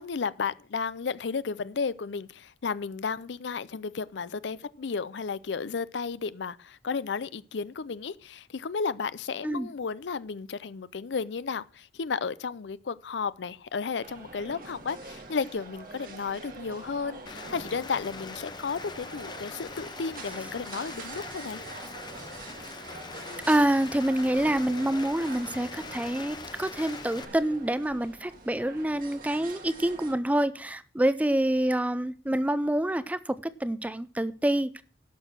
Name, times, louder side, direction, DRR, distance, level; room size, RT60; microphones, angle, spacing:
voice 1, 0.0-21.6, left 5 dB, 70° left, 0.5 m, -33 dB
sound 1, 14.0-30.2, right 3 dB, 50° right, 1.7 m, -45 dB
Rain, 17.3-27.3, left 4 dB, 25° left, 0.9 m, -42 dB
voice 2, 23.5-34.8, right 1 dB, 10° right, 0.5 m, -27 dB
11.5 x 6.5 x 6.0 m
head